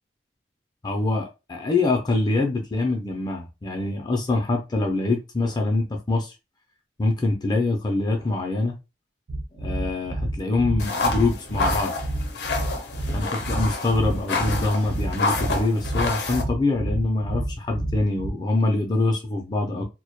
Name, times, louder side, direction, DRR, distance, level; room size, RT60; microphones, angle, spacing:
voice 1, 0.8-6.3 7.0-8.8 9.6-11.9 13.1-19.9, left 2 dB, 25° left, 0.4 m, -24 dB
sound 1, 9.3-18.3, right 1 dB, 60° right, 0.4 m, -29 dB
sound 2, 10.8-16.4, left 3 dB, 75° left, 0.5 m, -28 dB
2.1 x 2.1 x 2.8 m
head